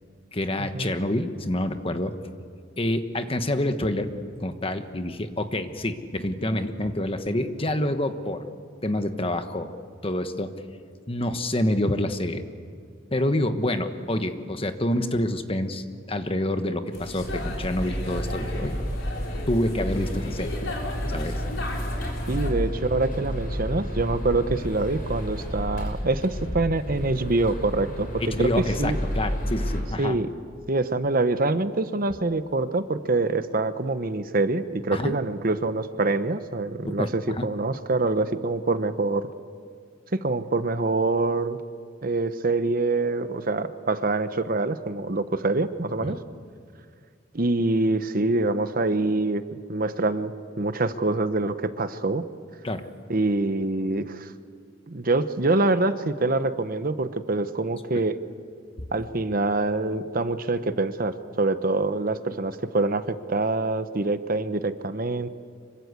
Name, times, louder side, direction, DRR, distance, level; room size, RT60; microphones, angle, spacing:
voice 1, 0.3-2.1 2.8-4.1 4.4-8.4 8.8-9.7 10.0-10.5 11.1-12.4 13.1-18.8 19.5-20.5 21.1-21.4 21.9-22.0 28.2-30.2 34.9-35.1 36.8-37.5 46.0-46.2 52.6-52.8, left 1 dB, 30° left, 8 dB, 1.3 m, -27 dB
sound 1, 16.9-22.5, left 2 dB, 75° left, 4.7 m, -36 dB
sound 2, 17.2-29.8, equal, 45° left, 5.9 m, -31 dB
voice 2, 22.3-29.0 30.0-30.3 30.7-39.3 40.1-41.6 42.0-46.2 47.3-49.4 49.7-50.3 50.6-52.2 53.1-54.3 54.9-58.2 58.9-65.3, right 2 dB, 45° right, 11 dB, 0.9 m, -25 dB
26.0 x 23.5 x 8.3 m, 2.1 s
head